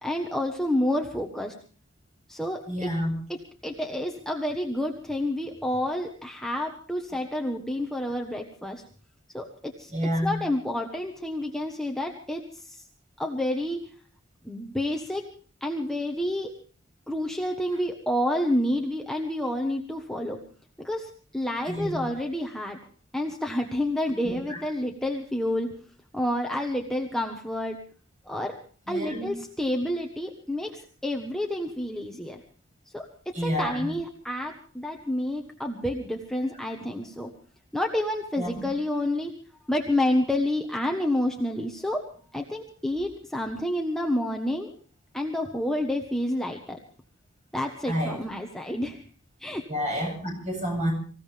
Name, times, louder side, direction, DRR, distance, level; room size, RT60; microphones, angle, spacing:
voice 1, 0.0-1.5 2.3-2.9 3.3-8.8 9.3-9.9 10.2-12.9 13.2-13.8 14.4-15.3 15.6-16.5 17.1-20.4 20.8-22.8 23.1-25.7 26.1-27.8 28.2-28.5 28.9-32.4 32.9-37.3 37.7-39.3 39.7-42.0 42.3-44.7 45.1-46.8 47.5-49.0 49.4-49.6, left 1 dB, ahead, 1 dB, 1.3 m, -29 dB
voice 2, 2.7-3.1 9.9-10.4 21.7-22.0 24.2-24.6 28.9-29.3 33.3-33.9 38.4-38.7 47.8-48.2 49.7-50.9, equal, 35° right, 1 dB, 7.8 m, -29 dB
25.5 x 16.0 x 3.4 m, 0.43 s
head